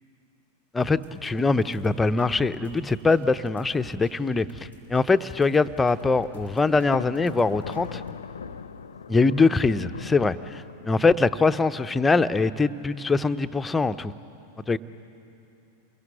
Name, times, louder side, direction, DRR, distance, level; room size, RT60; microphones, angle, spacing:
voice 1, 0.7-8.0 9.1-14.1 14.7-14.8, left 3 dB, 10° left, 11 dB, 0.7 m, -23 dB
sound 1, 0.8-8.1, equal, 85° right, 5.8 m, -48 dB
Thunder, 6.7-11.3, left 6 dB, 70° left, 0.7 m, -40 dB
29.0 x 22.0 x 9.1 m, 2.8 s
figure-of-eight pair, 90°, 0 cm